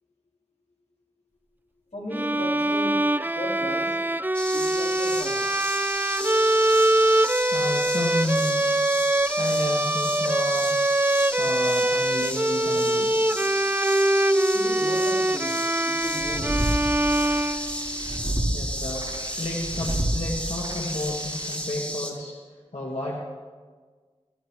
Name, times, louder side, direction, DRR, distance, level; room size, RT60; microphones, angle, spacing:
voice 1, 1.9-3.0 3.3-4.0 4.5-5.4 14.5-16.6 22.7-22.9, left 1 dB, 85° left, -4 dB, 3.3 m, -36 dB
Bowed string instrument, 2.1-18.1, right 1 dB, 15° right, 0.3 m, -23 dB
sound 1, 4.3-22.1, equal, 10° left, 2.1 m, -33 dB
voice 2, 7.5-8.7 9.4-10.8 11.4-13.2 18.5-22.4 22.7-23.2, left 1 dB, 65° left, -3 dB, 1.8 m, -31 dB
sound 2, 16.1-21.6, right 1 dB, 45° right, 3.5 m, -31 dB
22.0 x 15.0 x 3.0 m, 1.5 s
wide cardioid pair, 50°, 12 cm